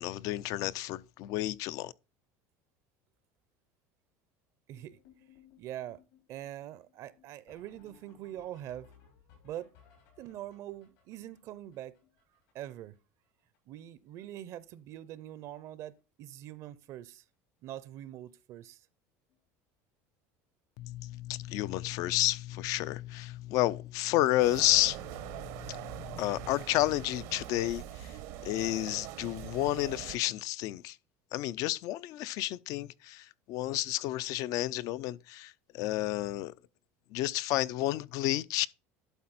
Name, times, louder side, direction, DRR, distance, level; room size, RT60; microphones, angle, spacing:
voice 1, 0.0-1.9 20.8-25.0 25.2-28.2 28.4-31.0 31.3-36.5 37.1-38.7, left 15 dB, 55° left, 0.4 m, -31 dB
sound 1, 4.7-13.0 13.2-13.3 13.5-13.8 14.1-14.6 14.9-15.2 16.0-16.1 16.5-16.6 16.9-17.0 19.3-19.4 21.7-21.8, left 7 dB, 85° left, 4.9 m, -63 dB
voice 2, 4.7-5.0 5.6-6.0 6.3-8.9 9.4-9.7 10.2-12.0 12.5-13.0 13.7-17.2 17.6-18.9, right 12 dB, 50° right, 0.6 m, -43 dB
sound 2, 24.4-30.2, right 11 dB, 75° right, 0.9 m, -43 dB
11.5 x 4.2 x 4.1 m
supercardioid pair, 130°, 7 cm